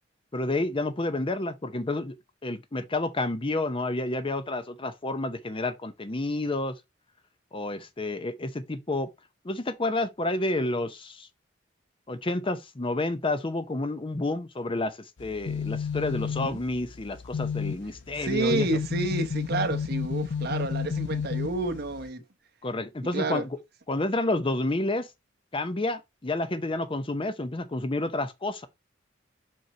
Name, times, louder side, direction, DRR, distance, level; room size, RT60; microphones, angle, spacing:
voice 1, 0.3-2.2 2.4-6.7 7.5-9.1 9.4-11.3 12.1-18.7 22.6-23.5 23.9-25.1 25.5-28.7, left 2 dB, 30° left, 0.7 m, -30 dB
sound 1, 15.2-22.1, left 6 dB, 70° left, 0.5 m, -32 dB
voice 2, 18.2-22.2 23.1-23.5, right 2 dB, 55° right, 1.2 m, -29 dB
5.5 x 5.4 x 4.4 m
head